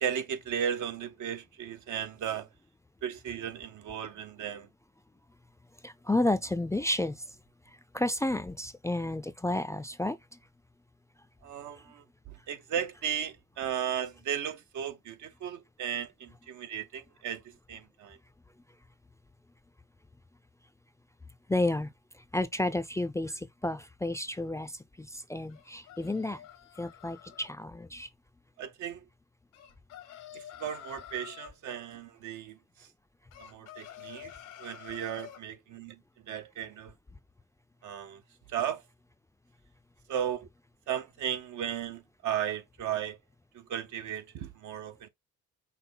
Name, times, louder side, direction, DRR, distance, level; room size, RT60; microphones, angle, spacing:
voice 1, 0.0-2.5 3.0-4.7 11.4-18.2 28.6-29.0 30.3-32.9 33.4-34.3 34.6-36.0 36.3-36.9 37.8-38.2 38.5-38.8 40.1-40.5 40.9-43.2 43.5-45.1, right 9 dB, 75° right, 0.8 m, -35 dB
voice 2, 5.8-7.2 7.9-10.2 21.5-21.9 22.3-26.4 26.8-28.1, left 1 dB, 10° left, 0.3 m, -31 dB
sound 1, 25.5-27.5 29.5-31.5 33.3-35.4, left 11 dB, 85° left, 1.1 m, -48 dB
5.7 x 2.0 x 3.8 m
cardioid pair, 90°, 30 cm